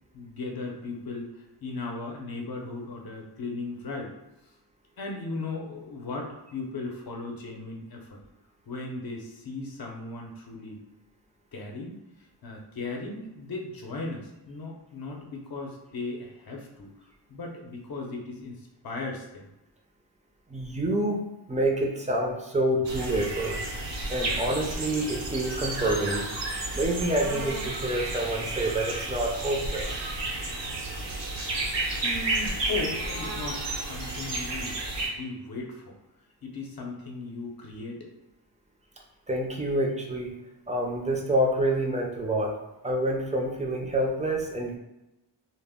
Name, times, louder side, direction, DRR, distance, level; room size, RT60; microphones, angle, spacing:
voice 1, 0.1-4.1 5.0-8.2 8.7-10.8 11.5-12.0 12.4-16.9 17.3-19.5 31.7-36.0 36.4-38.1, left 3 dB, 55° left, 0 dB, 0.6 m, -37 dB
voice 2, 20.5-23.6 24.1-26.3 26.7-30.0 39.3-40.4 40.7-42.6 42.8-44.8, right 1 dB, 15° right, 0 dB, 0.4 m, -27 dB
sound 1, 22.8-35.1, right 2 dB, 75° right, 0.8 m, -32 dB
2.0 x 2.0 x 3.4 m, 0.93 s
wide cardioid pair, 95°, 43 cm